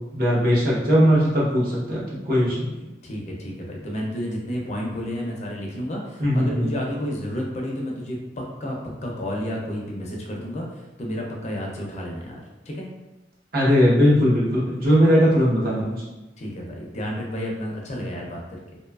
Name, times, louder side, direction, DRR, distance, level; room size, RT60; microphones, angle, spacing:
voice 1, 0.1-2.9 6.2-6.7 13.5-16.0, equal, 55° right, -6 dB, 0.8 m, -19 dB
voice 2, 3.0-12.9 16.4-18.6, equal, 40° left, -1 dB, 0.4 m, -31 dB
2.6 x 2.2 x 2.3 m, 1.1 s
head